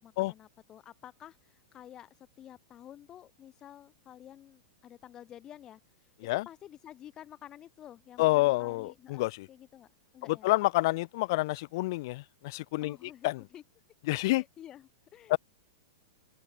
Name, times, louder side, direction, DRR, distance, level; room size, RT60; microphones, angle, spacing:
voice 1, 0.0-5.8 6.2-9.9 10.1-10.5 12.8-13.6 14.2-15.4, left 11 dB, 25° left, 1.0 m, -51 dB
voice 2, 8.2-9.5 10.3-13.0 13.2-13.4 14.1-14.4 15.3-15.4, left 20 dB, 50° left, 0.3 m, -28 dB
open air
supercardioid pair, 145°, 3 cm